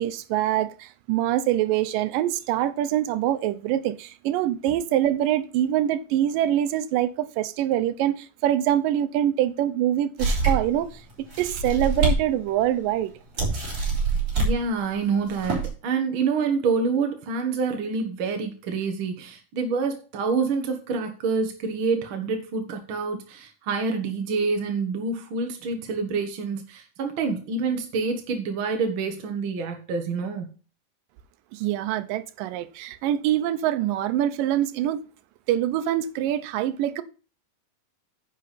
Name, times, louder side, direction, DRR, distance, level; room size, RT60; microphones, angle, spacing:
voice 1, 0.0-11.0 11.4-13.1 31.5-35.1 35.5-37.0, right 12 dB, 80° right, 2.4 m, -24 dB
sound 1, 10.2-10.8 11.3-12.2 12.6-12.7 13.4-14.5 15.2-15.7, right 3 dB, 25° right, 3.8 m, -24 dB
voice 2, 14.4-30.5, right 4 dB, 60° right, 1.4 m, -27 dB
10.0 x 6.6 x 4.2 m
omnidirectional pair, 3.9 m